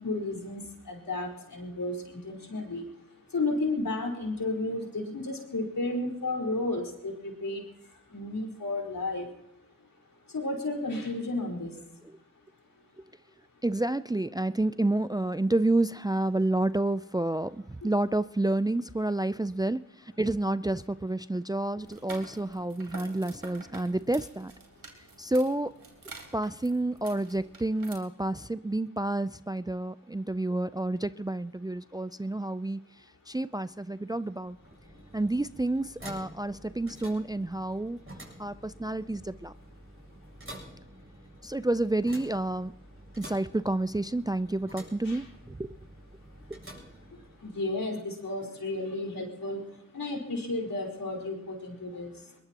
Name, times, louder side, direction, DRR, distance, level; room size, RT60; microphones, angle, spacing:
voice 1, 0.0-2.8 3.3-7.6 8.1-9.3 10.3-11.7 45.0-45.2 47.4-49.6 49.9-52.1, left 2 dB, 70° left, 0 dB, 4.8 m, -32 dB
voice 2, 13.6-24.5 25.2-25.8 26.3-32.8 33.3-34.6 35.1-38.0 38.4-39.5 41.4-42.7 43.2-45.7 46.5-46.6, right 2 dB, 10° right, 14 dB, 0.5 m, -29 dB
sound 1, 21.8-27.9, right 3 dB, 75° right, 3.6 m, -48 dB
sound 2, 34.4-47.7, right 1 dB, 35° right, 7.6 m, -49 dB
21.5 x 21.0 x 3.0 m, 0.90 s
cardioid pair, 40°, 35 cm